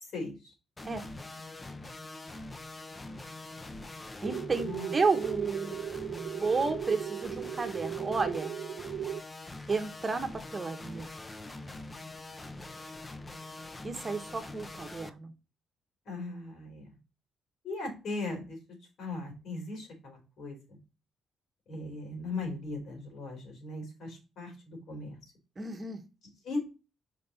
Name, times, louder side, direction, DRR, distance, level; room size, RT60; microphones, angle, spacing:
voice 1, 0.1-0.5 4.6-4.9 16.1-16.9 17.6-18.6 19.0-20.8 21.7-25.2 26.4-26.6, left 2 dB, 65° left, 1 dB, 4.1 m, -38 dB
sound 1, 0.8-15.1, left 2 dB, 20° left, 0.7 m, -44 dB
voice 2, 4.2-8.5 9.7-11.1 13.8-15.3 25.6-26.0, right 4 dB, 30° right, 7 dB, 1.1 m, -32 dB
sound 2, 4.2-9.2, right 10 dB, 70° right, 0.3 m, -37 dB
5.3 x 5.2 x 4.0 m, 0.30 s
cardioid pair, 90°, 0 cm